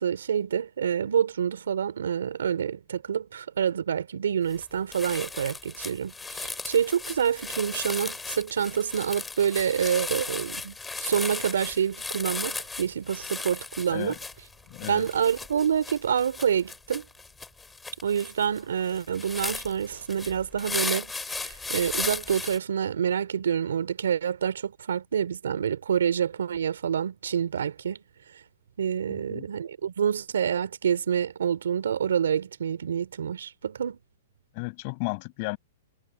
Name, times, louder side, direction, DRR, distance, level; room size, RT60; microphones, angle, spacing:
voice 1, 0.0-14.2 14.9-17.1 18.0-28.0 28.8-34.0, right 8 dB, 85° right, 3.7 m, -27 dB
sound 1, 4.5-4.6 4.9-22.6, left 3 dB, 10° left, 3.5 m, -36 dB
voice 2, 14.7-15.1 29.1-29.5 34.5-35.6, left 31 dB, 40° left, 7.4 m, -34 dB
hypercardioid pair, 145°, 0 cm